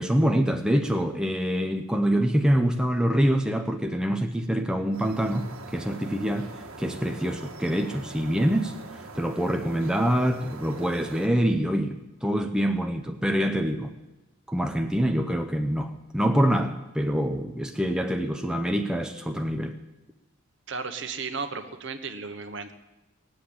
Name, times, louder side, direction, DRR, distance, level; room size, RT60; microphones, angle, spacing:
voice 1, 0.0-6.5 6.8-8.8 9.1-13.9 14.5-19.8, equal, 5° right, 0.6 m, -25 dB
sound 1, 4.9-11.3, right 3 dB, 90° right, 1.5 m, -43 dB
voice 2, 20.7-22.7, right 4 dB, 60° right, 1.1 m, -34 dB
19.0 x 7.9 x 8.7 m
head